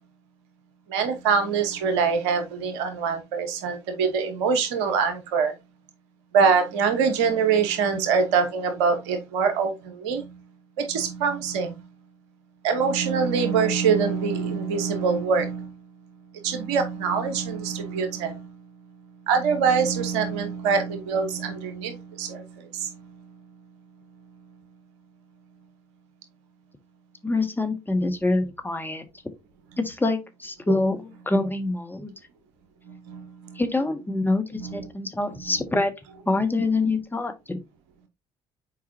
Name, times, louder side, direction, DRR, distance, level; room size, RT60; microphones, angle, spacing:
voice 1, 0.9-5.5 6.3-10.4 10.8-11.9 12.6-15.8 16.4-18.6 19.3-23.3 32.9-33.6 34.6-34.9 35.5-35.6, right 6 dB, 75° right, 1.2 m, -24 dB
voice 2, 27.2-29.0 29.8-32.1 33.5-35.9 36.3-37.6, left 2 dB, 15° left, 1.4 m, -25 dB
7.3 x 4.6 x 2.8 m
hypercardioid pair, 50°, 14 cm